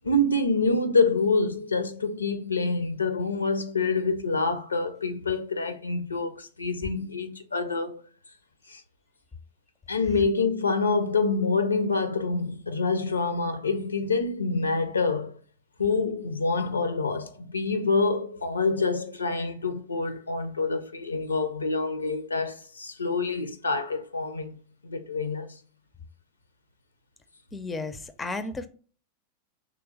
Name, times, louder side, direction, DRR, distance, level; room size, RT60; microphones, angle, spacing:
voice 1, 0.0-8.0 8.7-8.8 9.9-15.4 15.8-24.6 24.8-25.6, left 3 dB, 75° left, 0.5 m, -26 dB
voice 2, 27.5-28.7, left 3 dB, 15° left, 0.4 m, -33 dB
3.3 x 3.0 x 4.7 m
figure-of-eight pair, 90°, 0 cm